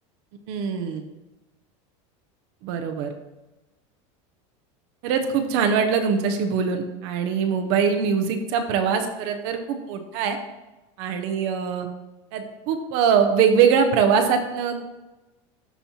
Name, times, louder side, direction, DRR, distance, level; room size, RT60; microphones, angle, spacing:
voice 1, 0.5-1.0 2.6-3.1 5.0-10.4 11.0-11.9 12.3-14.8, right 6 dB, 50° right, 6 dB, 0.7 m, -22 dB
12.5 x 4.2 x 2.9 m, 1.1 s
supercardioid pair, 175°, 16 cm